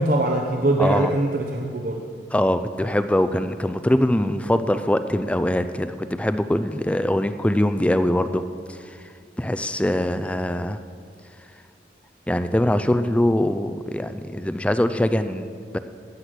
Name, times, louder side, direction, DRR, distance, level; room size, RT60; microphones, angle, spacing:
voice 1, 0.0-2.0, right 1 dB, 50° right, 1 dB, 0.8 m, -22 dB
voice 2, 0.8-1.1 2.3-8.4 8.7-9.0 9.4-10.8 12.3-15.8, left 1 dB, 5° left, 11 dB, 0.4 m, -22 dB
14.0 x 6.2 x 8.2 m, 2.2 s
head